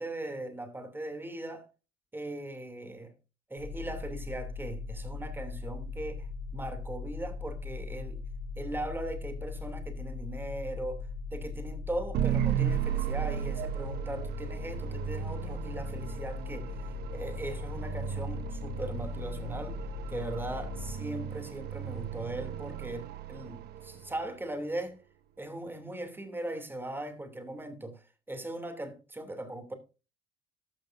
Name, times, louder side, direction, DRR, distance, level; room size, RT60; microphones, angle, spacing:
voice 1, 0.0-1.7 2.1-3.1 3.5-8.2 8.6-19.8 20.1-25.0 25.4-29.7, right 1 dB, 10° right, 2.9 m, -39 dB
sound 1, 3.6-21.0, left 4 dB, 60° left, 5.7 m, -39 dB
sound 2, 12.1-24.3, right 10 dB, 75° right, 1.0 m, -35 dB
14.0 x 11.5 x 2.7 m
cardioid pair, 110°, 17 cm